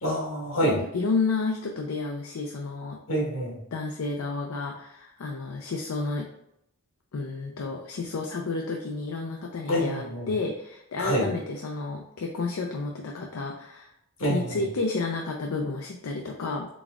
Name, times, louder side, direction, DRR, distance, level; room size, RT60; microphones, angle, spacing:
voice 1, 0.0-0.8 3.1-3.6 9.7-10.3 11.0-11.3 14.2-14.6, equal, 70° left, -2 dB, 1.3 m, -26 dB
voice 2, 0.6-3.0 3.7-6.3 7.1-13.9 14.3-16.7, left 3 dB, 85° left, 1 dB, 0.5 m, -31 dB
4.0 x 3.5 x 2.3 m, 0.79 s
head